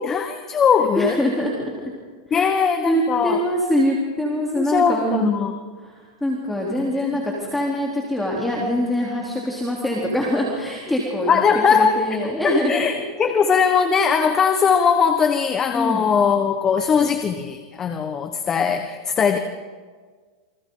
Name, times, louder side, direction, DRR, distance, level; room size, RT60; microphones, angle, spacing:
voice 1, 0.0-1.2 2.3-3.4 4.5-5.5 6.7-7.2 11.3-19.4, left 6 dB, 20° left, 7 dB, 1.3 m, -20 dB
voice 2, 1.0-1.9 2.3-2.5 2.9-5.5 5.8-13.3 15.7-16.1, equal, 5° left, -4 dB, 3.6 m, -24 dB
29.5 x 25.5 x 4.0 m, 1.5 s
supercardioid pair, 140°, 2 cm